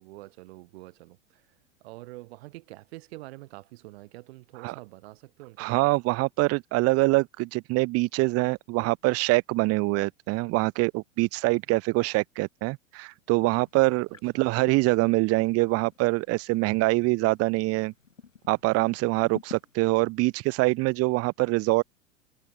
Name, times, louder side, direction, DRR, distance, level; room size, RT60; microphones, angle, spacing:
voice 1, 0.0-1.4 1.8-6.0 14.3-14.5, right 20 dB, 55° right, 3.6 m, -46 dB
voice 2, 5.6-17.9 18.5-21.8, right 23 dB, 40° right, 1.5 m, -24 dB
sound 1, 13.5-20.1, left 6 dB, 85° left, 4.1 m, -51 dB
figure-of-eight pair, 95°, 37 cm